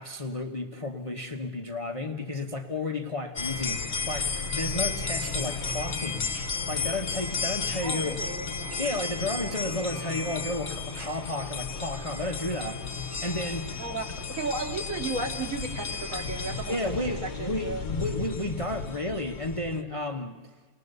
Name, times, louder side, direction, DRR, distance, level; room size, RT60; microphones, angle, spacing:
voice 1, 0.0-6.3 6.7-8.2 8.8-12.8 13.2-13.8 16.7-20.4, left 2 dB, 20° left, 5 dB, 1.2 m, -32 dB
sound 1, 3.4-19.8, left 5 dB, 40° left, 1.4 m, -33 dB
sound 2, 4.8-15.5, right 1 dB, 20° right, 2.5 m, -51 dB
voice 2, 7.8-8.5 13.8-16.8 17.1-17.8, right 3 dB, 50° right, 2 dB, 2.8 m, -34 dB
29.5 x 21.0 x 6.8 m, 1.3 s
omnidirectional pair, 1.8 m